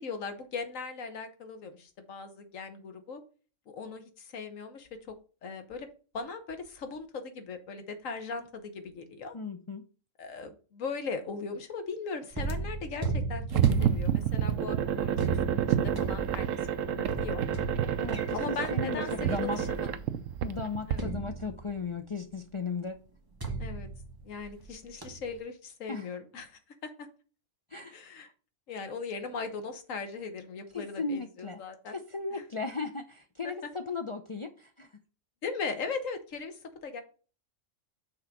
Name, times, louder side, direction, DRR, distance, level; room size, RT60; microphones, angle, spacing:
voice 1, 0.0-3.2 3.7-5.1 5.4-5.9 6.1-9.3 10.2-16.5 16.8-17.4 18.3-19.9 20.9-21.1 23.6-23.9 24.2-27.1 27.9-28.3 28.7-31.9 32.3-32.4 33.4-33.5 35.4-37.0, left 4 dB, 80° left, 1.4 m, -39 dB
voice 2, 9.3-9.8 18.0-19.6 20.4-23.0 25.9-26.1 27.7-28.0 30.7-35.0, left 4 dB, 50° left, 0.3 m, -36 dB
sound 1, 12.3-20.3 21.0-22.0 23.4-24.7 25.0-25.4, right 3 dB, 15° right, 1.3 m, -36 dB
sound 2, 13.5-21.0, right 10 dB, 80° right, 1.0 m, -29 dB
6.2 x 3.8 x 5.9 m
omnidirectional pair, 1.3 m